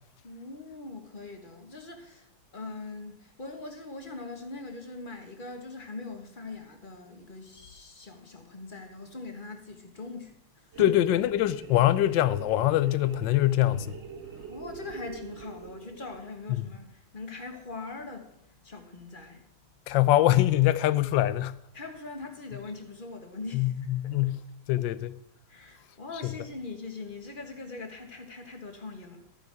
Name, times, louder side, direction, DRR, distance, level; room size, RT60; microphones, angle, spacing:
voice 1, 0.2-2.3 2.5-10.9 14.5-19.4 21.7-24.3 25.5-29.3, left 3 dB, 30° left, 1.6 m, -42 dB
sound 1, 10.7-16.5, right 5 dB, 40° right, 1.2 m, -44 dB
voice 2, 10.8-14.0 19.9-21.5 23.5-24.4 24.7-25.2 26.2-26.3, left 14 dB, 85° left, 1.3 m, -23 dB
13.5 x 9.1 x 4.8 m
omnidirectional pair, 2.0 m